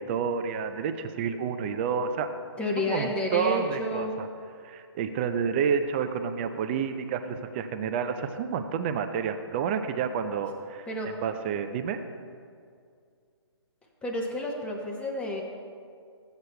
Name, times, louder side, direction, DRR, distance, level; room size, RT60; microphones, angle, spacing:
voice 1, 0.0-2.3 2.9-4.3 4.6-10.9 11.2-12.0, right 7 dB, 25° right, 8 dB, 0.4 m, -29 dB
voice 2, 2.6-4.1 10.9-11.1 14.0-15.4, left 1 dB, 5° left, 0 dB, 0.8 m, -30 dB
15.0 x 8.0 x 2.2 m, 2.3 s
hypercardioid pair, 150°, 15 cm